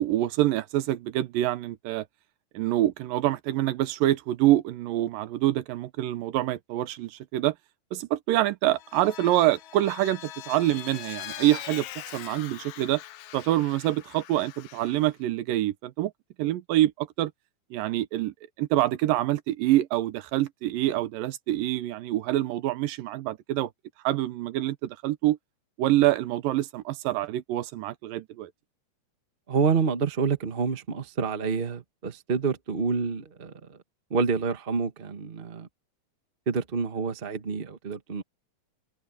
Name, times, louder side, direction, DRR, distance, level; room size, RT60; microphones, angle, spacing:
voice 1, 0.0-2.1 2.5-7.5 7.9-13.0 13.3-16.1 16.4-17.3 17.7-18.3 18.6-23.7 24.0-25.4 25.8-28.5, right 15 dB, 85° right, 2.6 m, -26 dB
Vehicle, 8.7-15.1, left 13 dB, 70° left, 2.1 m, -42 dB
voice 2, 29.5-33.8 34.1-35.7 36.5-38.2, right 5 dB, 55° right, 0.5 m, -28 dB
omnidirectional pair, 3.8 m